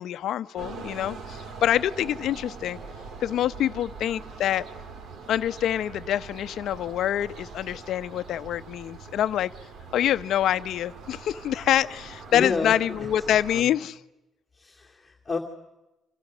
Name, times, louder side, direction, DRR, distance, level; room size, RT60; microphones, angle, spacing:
voice 1, 0.0-2.8 3.2-4.6 5.3-9.5 9.9-14.0, left 11 dB, 65° left, 12 dB, 0.9 m, -26 dB
sound 1, 0.6-13.6, right 4 dB, 55° right, 2.8 m, -43 dB
voice 2, 12.3-13.1 13.5-13.7 14.5-15.4, left 4 dB, 15° left, -1 dB, 2.4 m, -30 dB
28.0 x 27.5 x 6.3 m, 0.99 s
cardioid pair, 160°, 0 cm